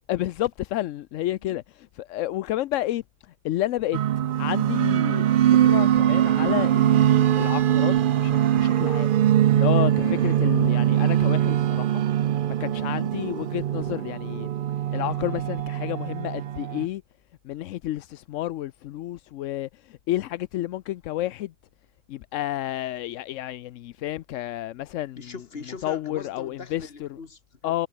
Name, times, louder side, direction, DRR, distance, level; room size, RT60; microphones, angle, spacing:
voice 1, 0.1-3.0 3.4-4.0 4.4-9.1 9.5-9.9 10.2-12.0 12.5-14.5 14.9-17.0 17.4-21.5 22.1-25.3 25.8-27.1 27.6-27.9, left 14 dB, 85° left, 0.9 m, -30 dB
sound 1, 3.9-16.9, right 11 dB, 60° right, 0.6 m, -22 dB
voice 2, 9.4-10.5 25.2-27.7, left 4 dB, 50° left, 2.2 m, -39 dB
omnidirectional pair, 1.3 m